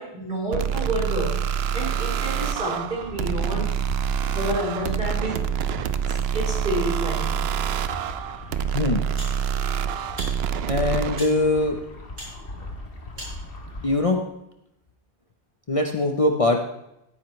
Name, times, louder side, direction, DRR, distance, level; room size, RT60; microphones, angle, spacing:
voice 1, 0.0-1.4 1.7-3.7 4.3-5.4 6.1-7.4, right 1 dB, 55° right, -3 dB, 4.5 m, -29 dB
sound 1, 0.5-11.2, right 8 dB, 75° right, 0.8 m, -26 dB
sound 2, 3.0-14.0, left 1 dB, 60° left, 1.8 m, -40 dB
voice 2, 8.7-9.1 10.7-11.8 13.8-14.2 15.7-16.6, left 2 dB, 35° left, 3 dB, 0.8 m, -22 dB
sound 3, 9.1-9.4 10.1-10.3 11.1-11.3 12.1-12.3 13.1-13.4, equal, 90° right, 5.6 m, -37 dB
15.5 x 9.3 x 3.2 m, 0.83 s
omnidirectional pair, 1.1 m